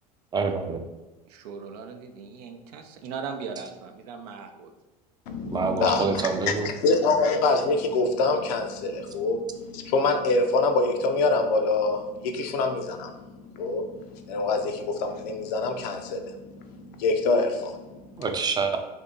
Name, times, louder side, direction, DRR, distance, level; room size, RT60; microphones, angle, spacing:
voice 1, 0.3-0.8 5.5-6.7 18.2-18.8, right 4 dB, 20° right, 5 dB, 0.4 m, -26 dB
voice 2, 1.3-4.7, right 5 dB, 80° right, 6 dB, 0.5 m, -38 dB
voice 3, 5.3-6.5 6.8-18.3, left 3 dB, 75° left, 5 dB, 0.6 m, -25 dB
2.7 x 2.7 x 3.7 m, 1.1 s
hypercardioid pair, 95°, 20 cm